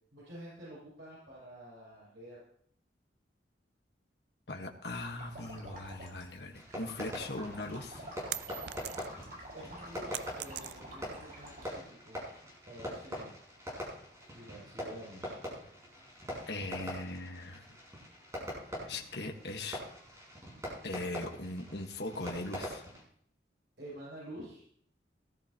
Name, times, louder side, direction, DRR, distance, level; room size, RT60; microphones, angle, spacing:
voice 1, 0.1-2.4 9.5-13.3 14.3-15.4 23.8-24.7, right 1 dB, 90° right, -8 dB, 7.4 m, -49 dB
voice 2, 4.5-8.0 16.5-17.7 18.8-19.8 20.8-22.8, left 2 dB, 65° left, 3 dB, 1.5 m, -40 dB
sound 1, 4.9-11.7, right 1 dB, 50° right, 5.4 m, -48 dB
Fireworks, 6.5-23.0, equal, 20° right, 6.5 m, -43 dB
sound 2, 7.5-9.3 9.7-11.1, right 12 dB, 65° right, 0.5 m, -41 dB
18.5 x 13.0 x 3.0 m, 0.63 s
head